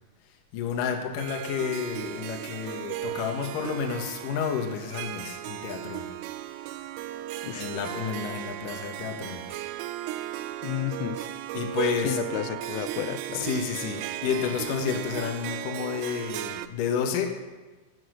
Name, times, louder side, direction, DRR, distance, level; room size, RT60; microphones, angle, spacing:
voice 1, 0.5-6.1 7.5-9.6 11.5-12.4 13.3-17.4, left 7 dB, 65° left, 3 dB, 2.2 m, -30 dB
Harp, 1.2-16.7, right 13 dB, 85° right, 3.1 m, -36 dB
voice 2, 10.6-11.3 12.0-13.5, left 14 dB, 85° left, 12 dB, 3.2 m, -32 dB
21.0 x 7.4 x 6.3 m, 1.3 s
omnidirectional pair, 5.7 m